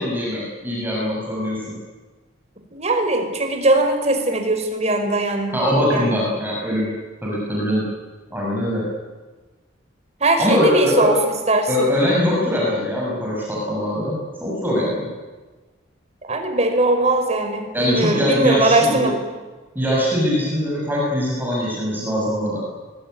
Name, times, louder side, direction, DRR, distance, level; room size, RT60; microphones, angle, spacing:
voice 1, 0.0-1.6 5.5-6.9 7.2-7.8 8.3-8.9 10.4-11.1 11.7-15.1 17.7-19.1 19.7-22.6, equal, 10° right, -4 dB, 6.7 m, -22 dB
voice 2, 2.7-5.5 5.9-6.2 10.2-11.2 11.5-11.9 16.2-19.2, right 2 dB, 35° right, 5 dB, 4.9 m, -20 dB
24.5 x 21.5 x 9.5 m, 1.3 s
head